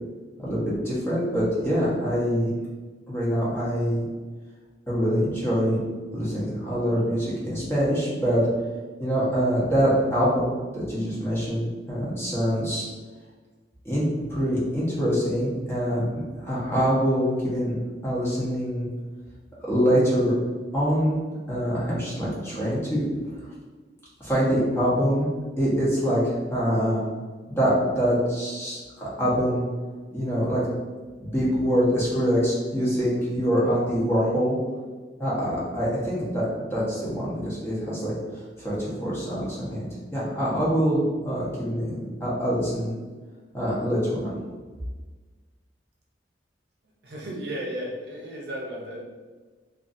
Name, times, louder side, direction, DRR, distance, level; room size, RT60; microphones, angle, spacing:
voice 1, 0.4-2.5 3.1-4.1 4.9-5.8 6.1-8.5 9.0-12.8 13.8-16.0 16.4-17.7 18.0-18.9 19.6-20.3 20.7-21.2 21.5-23.0 24.2-25.3 25.6-27.0 27.5-29.6 30.1-30.6 31.2-34.5 35.2-39.8 40.1-42.9 43.5-44.3, equal, 15° left, -8 dB, 0.9 m, -24 dB
voice 2, 47.0-49.0, right 1 dB, 65° right, -3 dB, 0.7 m, -34 dB
2.6 x 2.5 x 2.6 m, 1.4 s
head